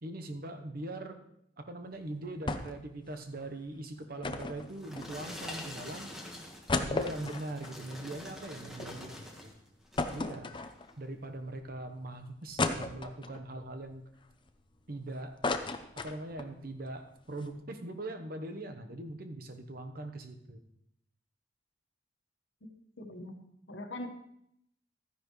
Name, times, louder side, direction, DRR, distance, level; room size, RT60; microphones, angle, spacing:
voice 1, 0.0-1.2 1.6-6.1 6.7-9.5 10.1-10.5 11.0-14.0 14.9-15.4 16.0-20.6, right 2 dB, 50° right, 7 dB, 1.0 m, -41 dB
sound 1, 2.5-2.9 3.2-3.3 4.2-5.5 6.0-6.1 6.4-8.9 9.3-9.4 10.0-11.1 11.6-11.7 12.6-13.4 14.0-14.9 15.2-16.5 16.9-17.0 17.2-17.5, left 3 dB, 25° left, 0.6 m, -35 dB
sound 2, 4.4-9.5 9.9-10.3 10.9-11.0, left 1 dB, ahead, 1.5 m, -45 dB
voice 2, 23.0-23.4 23.7-24.2, left 1 dB, 85° left, 4 dB, 1.4 m, -41 dB
13.0 x 10.0 x 3.2 m, 0.75 s
head